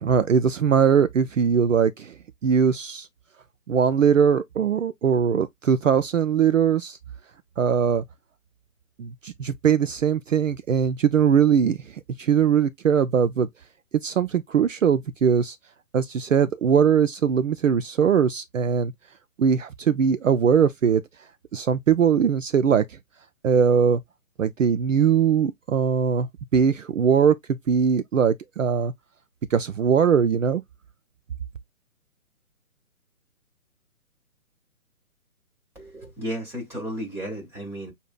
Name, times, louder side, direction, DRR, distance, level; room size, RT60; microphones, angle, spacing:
voice 1, 0.0-2.1 2.4-3.1 3.7-7.0 7.6-8.0 9.0-11.8 12.2-13.5 14.0-15.6 15.9-18.9 19.4-21.0 21.5-22.8 23.4-24.0 24.4-26.3 26.5-28.9 29.5-30.6, right 7 dB, 60° right, 0.6 m, -21 dB
voice 2, 35.8-37.9, equal, 5° right, 1.9 m, -33 dB
6.7 x 2.7 x 2.2 m
figure-of-eight pair, 140°, 43 cm